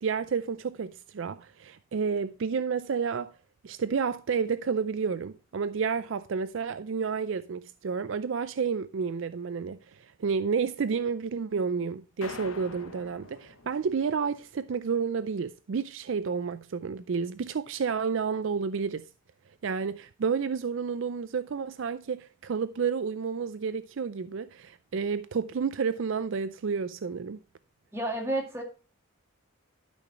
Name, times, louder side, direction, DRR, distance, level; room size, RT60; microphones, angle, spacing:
voice 1, 0.0-3.3 3.6-19.0 19.6-27.4, right 5 dB, 60° right, 0.4 m, -30 dB
sound 1, 12.2-14.6, left 3 dB, 70° left, 1.1 m, -45 dB
voice 2, 27.9-28.6, right 1 dB, 10° right, 2.1 m, -30 dB
12.0 x 6.1 x 3.0 m
head